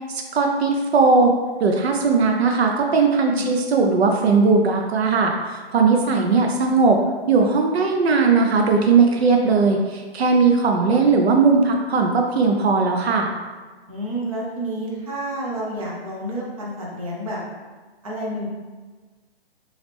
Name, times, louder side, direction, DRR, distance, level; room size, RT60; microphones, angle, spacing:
voice 1, 0.1-1.3 1.6-7.0 7.3-13.3, right 4 dB, 80° right, 2 dB, 0.7 m, -18 dB
voice 2, 5.9-6.4 13.9-17.4 18.0-18.5, right 1 dB, 35° right, -4 dB, 0.9 m, -30 dB
3.9 x 3.1 x 3.4 m, 1.4 s
hypercardioid pair, 175°, 31 cm